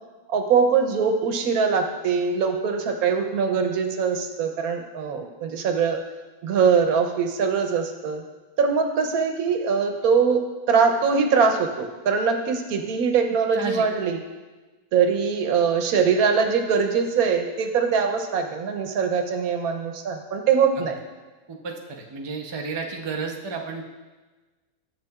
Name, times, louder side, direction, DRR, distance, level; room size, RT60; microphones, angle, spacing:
voice 1, 0.3-6.0 6.4-8.2 8.6-14.2 14.9-21.0, right 6 dB, 90° right, 5 dB, 1.2 m, -22 dB
voice 2, 13.5-13.8 20.8-20.9 21.5-23.8, right 4 dB, 40° right, 1 dB, 0.4 m, -32 dB
10.5 x 6.8 x 2.3 m, 1.2 s
omnidirectional pair, 1.5 m